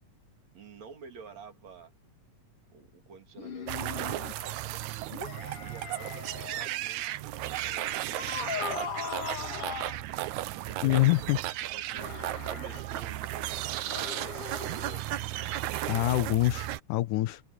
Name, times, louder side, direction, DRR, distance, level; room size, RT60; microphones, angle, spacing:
voice 1, 0.5-1.9 2.7-4.8 5.6-9.7 10.7-12.2 12.5-15.1, right 5 dB, 60° right, 3.9 m, -51 dB
sound 1, 3.4-4.3 5.1-6.7 7.7-10.0 11.9-12.8 13.8-15.0, left 7 dB, 50° left, 2.8 m, -39 dB
sound 2, 3.7-16.8, right 14 dB, 75° right, 2.1 m, -35 dB
voice 2, 10.8-11.4 15.9-17.4, left 18 dB, 80° left, 2.3 m, -25 dB
omnidirectional pair, 3.6 m